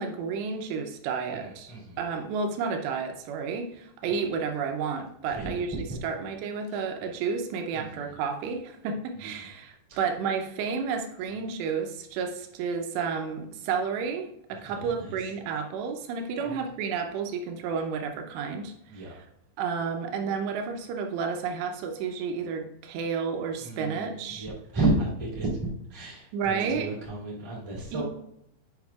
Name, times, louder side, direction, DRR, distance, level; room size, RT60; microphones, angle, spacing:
voice 1, 0.0-19.3 19.6-24.5 26.3-26.9 27.9-28.0, right 5 dB, 80° right, 4 dB, 2.7 m, -31 dB
voice 2, 1.7-2.0 5.3-5.5 5.9-6.0 7.7-7.9 9.9-10.0 14.6-14.9 16.4-16.5 18.9-19.1 23.6-25.5 25.9-28.0, right 2 dB, 15° right, -6 dB, 1.2 m, -31 dB
8.8 x 5.7 x 2.4 m, 0.75 s
omnidirectional pair, 5.3 m